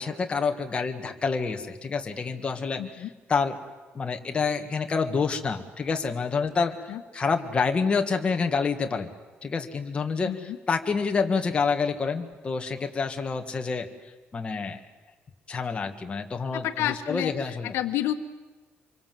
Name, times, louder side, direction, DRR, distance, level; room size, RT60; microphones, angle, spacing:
voice 1, 0.0-3.0 3.3-3.6 3.9-9.1 9.4-10.3 10.7-13.9 14.3-14.8 15.5-17.7, left 5 dB, 25° left, 4 dB, 1.9 m, -28 dB
voice 2, 2.8-3.1 6.9-7.0 10.2-10.6 16.5-18.1, left 12 dB, 85° left, 8 dB, 1.5 m, -30 dB
26.5 x 24.0 x 7.8 m, 1.2 s
cardioid pair, 145°, 4 cm